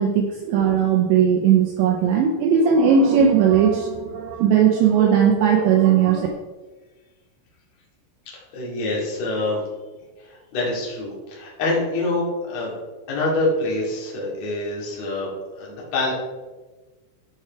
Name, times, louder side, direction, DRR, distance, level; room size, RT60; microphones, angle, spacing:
voice 1, 0.0-6.3, right 7 dB, 80° right, 2 dB, 2.6 m, -18 dB
voice 2, 8.5-9.6 10.2-12.7 13.1-16.1, left 2 dB, 45° left, -4 dB, 2.7 m, -26 dB
13.0 x 4.8 x 4.6 m, 1.2 s
omnidirectional pair, 5.9 m